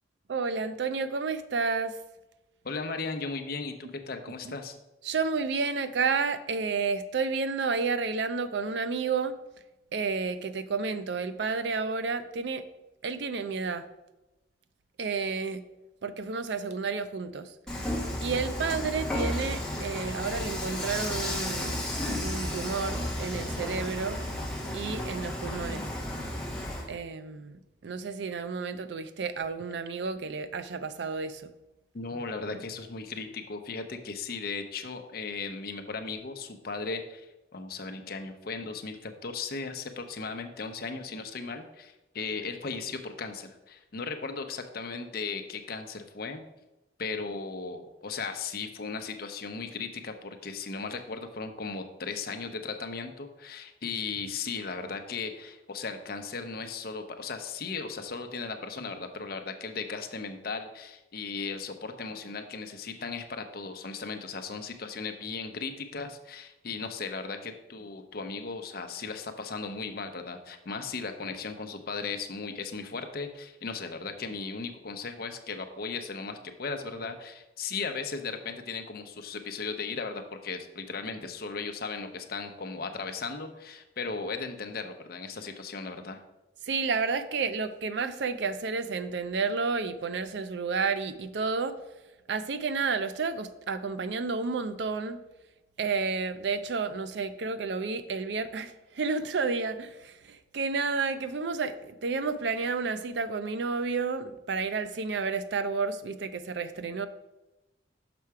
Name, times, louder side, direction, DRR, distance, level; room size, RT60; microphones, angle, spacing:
voice 1, 0.3-2.0 4.5-4.6 5.0-9.3 9.9-12.6 13.0-13.9 15.0-15.6 16.0-17.5 18.2-24.2 24.7-25.9 26.9-31.5 86.7-91.7 92.3-95.2 95.8-107.1, right 4 dB, 70° right, 12 dB, 0.5 m, -31 dB
voice 2, 2.6-4.7 31.9-46.4 47.0-86.2, left 4 dB, 55° left, 7 dB, 0.7 m, -37 dB
Dishes pots and pans / Frying (food), 17.7-26.9, left 1 dB, 5° left, 1.2 m, -33 dB
6.0 x 5.6 x 4.7 m, 1.0 s
head